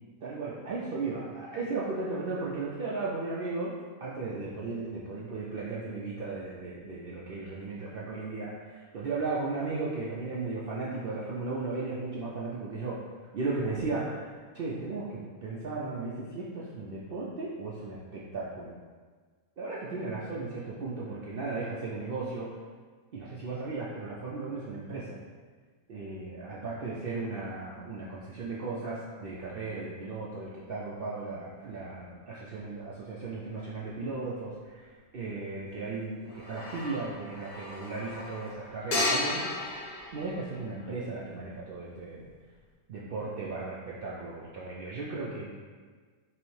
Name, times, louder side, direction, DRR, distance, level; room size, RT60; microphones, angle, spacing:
voice 1, 0.2-13.0 13.3-18.7 19.6-22.5 23.1-25.2 25.9-39.4 40.1-42.3 42.9-45.5, right 3 dB, 75° right, -5 dB, 0.5 m, -36 dB
sound 1, 33.6-33.7 36.2-41.1, left 2 dB, 55° left, 0.8 m, -34 dB
5.7 x 2.1 x 3.1 m, 1.5 s
omnidirectional pair, 1.5 m